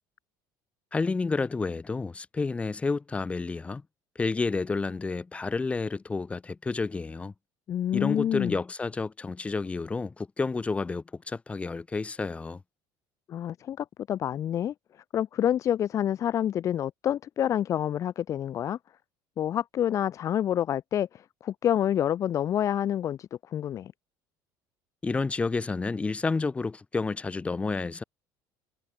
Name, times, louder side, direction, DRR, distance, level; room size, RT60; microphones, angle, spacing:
voice 1, 0.9-3.8 4.1-7.3 7.9-12.6 25.0-28.0, left 4 dB, 15° left, 7.8 m, -30 dB
voice 2, 7.7-8.6 13.3-14.7 15.1-18.8 19.4-23.9, left 10 dB, 40° left, 2.3 m, -28 dB
cardioid pair, 160°, 8 cm